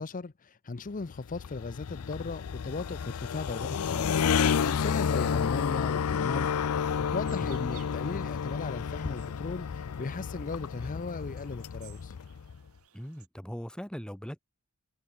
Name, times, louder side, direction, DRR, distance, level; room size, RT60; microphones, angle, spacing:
voice 1, 0.0-12.2, left 3 dB, 40° left, 0.6 m, -37 dB
sound 1, 1.0-12.6, left 7 dB, 85° left, 0.5 m, -31 dB
sound 2, 7.2-13.3, right 12 dB, 85° right, 6.5 m, -59 dB
voice 2, 12.9-14.4, equal, 5° left, 1.7 m, -40 dB
head